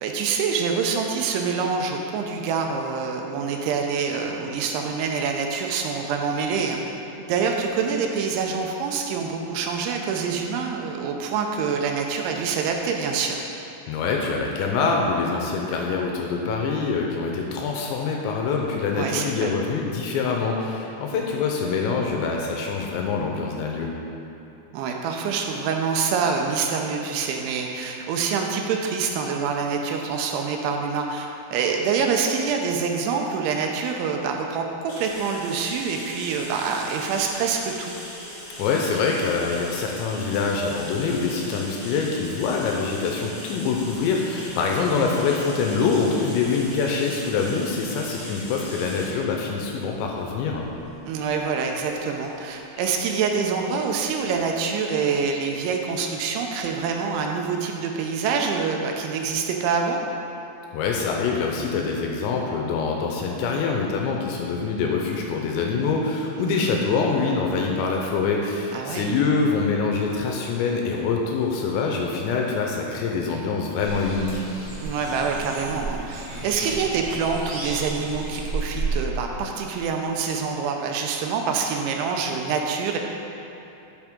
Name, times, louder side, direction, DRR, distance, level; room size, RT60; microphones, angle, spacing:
voice 1, 0.0-6.8 7.3-13.4 19.0-19.5 21.1-21.3 24.7-38.0 44.9-45.2 51.1-60.0 66.4-66.7 68.7-69.1 74.8-83.0, right 5 dB, 80° right, 2 dB, 2.9 m, -26 dB
voice 2, 13.9-23.9 38.6-50.7 60.7-74.4, left 4 dB, 85° left, 0 dB, 2.7 m, -25 dB
sound 1, 34.9-54.3, left 1 dB, 60° left, 1.0 m, -40 dB
sound 2, 73.8-78.9, right 3 dB, 50° right, 1.9 m, -32 dB
10.5 x 6.0 x 3.7 m, 2.9 s
omnidirectional pair, 5.5 m